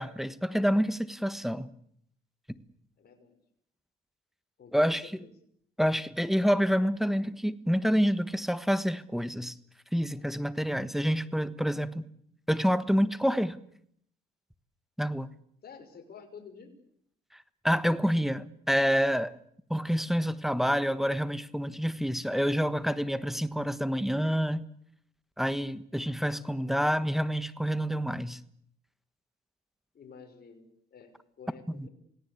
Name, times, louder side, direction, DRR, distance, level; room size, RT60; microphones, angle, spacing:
voice 1, 0.0-1.7 4.7-5.0 5.8-9.5 9.9-12.0 12.5-13.6 15.0-15.3 17.6-19.3 19.7-24.6 25.4-28.4 31.7-31.9, equal, ahead, 1.4 m, -27 dB
voice 2, 3.0-3.4 4.6-4.9 5.2-5.3 15.6-16.7 29.9-31.9, left 6 dB, 50° left, 6.0 m, -50 dB
28.0 x 18.0 x 8.4 m
cardioid pair, 90°, 20 cm